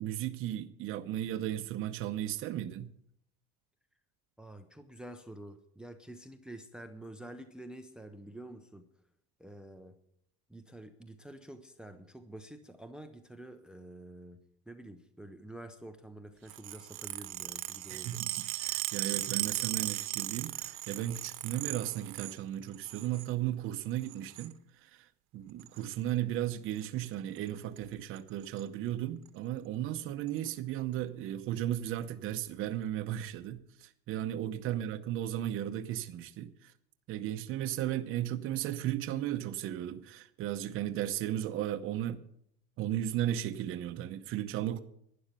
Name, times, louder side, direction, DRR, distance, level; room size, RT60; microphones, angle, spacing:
voice 1, 0.0-2.9 17.9-24.6 24.8-25.1 25.3-36.7 37.1-42.3 42.8-44.8, right 12 dB, 45° right, 0.8 m, -35 dB
voice 2, 4.4-8.9 9.4-9.9 10.5-14.4 14.7-18.2 34.7-34.8, right 1 dB, 5° right, 0.6 m, -48 dB
sound 1, 16.5-22.4 22.7-23.3 24.0-24.5 25.6-25.8 26.8-27.1 27.4-27.5 27.8-27.9 28.2-28.6 29.3-29.4 30.3-30.4, right 19 dB, 65° right, 1.1 m, -37 dB
12.0 x 10.0 x 6.8 m
cardioid pair, 155°, 29 cm